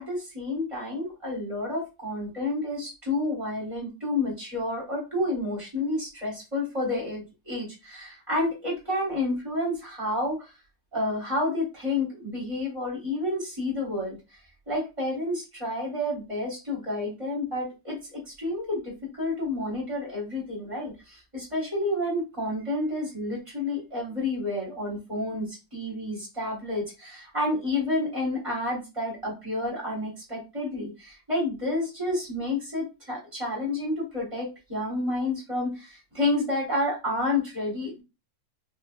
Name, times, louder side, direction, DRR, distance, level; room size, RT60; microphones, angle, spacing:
voice 1, 0.0-10.5 10.9-14.4 14.7-38.0, left 2 dB, 30° right, -4 dB, 0.6 m, -30 dB
4.9 x 2.2 x 2.5 m, 0.27 s
omnidirectional pair, 3.5 m